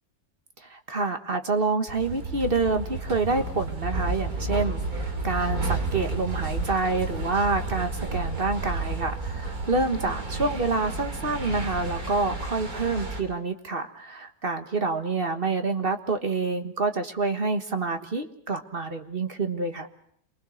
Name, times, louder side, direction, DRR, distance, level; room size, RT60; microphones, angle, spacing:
voice 1, 0.6-19.9, right 3 dB, 35° right, 7 dB, 1.6 m, -27 dB
sound 1, 1.9-13.2, right 3 dB, 60° right, 3.8 m, -31 dB
28.0 x 22.5 x 6.4 m, 0.67 s
omnidirectional pair, 1.7 m